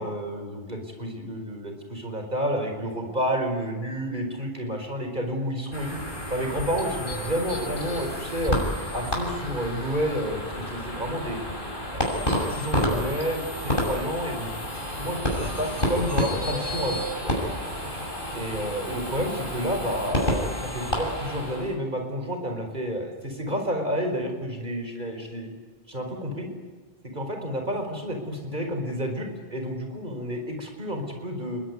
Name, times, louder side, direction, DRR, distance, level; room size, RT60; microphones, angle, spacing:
voice 1, 0.0-6.0 6.3-8.6 8.9-11.4 11.9-14.5 15.0-17.3 18.3-25.5 25.9-26.5 27.1-31.6, equal, 50° right, 4 dB, 4.9 m, -30 dB
sound 1, 5.7-21.7, equal, 55° left, 6.4 m, -30 dB
28.0 x 22.5 x 9.6 m, 1.4 s
omnidirectional pair, 1.0 m